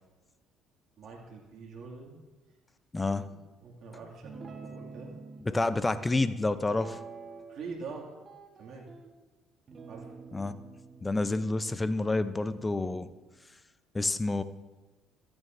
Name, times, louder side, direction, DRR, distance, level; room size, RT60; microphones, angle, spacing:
voice 1, 1.0-2.1 2.9-5.1 5.5-5.6 7.5-8.1 8.6-8.9 9.9-10.1, right 4 dB, 55° right, -3 dB, 2.3 m, -44 dB
voice 2, 2.9-3.3 5.5-7.0 10.3-10.6 11.0-13.1 13.9-14.4, left 2 dB, 20° left, 13 dB, 0.6 m, -29 dB
Guitar, 4.2-5.4 6.7-7.6 7.9-9.1 9.7-13.1, right 4 dB, 40° right, 1.3 m, -48 dB
14.0 x 9.8 x 2.6 m, 1.2 s
supercardioid pair, 70°, 0 cm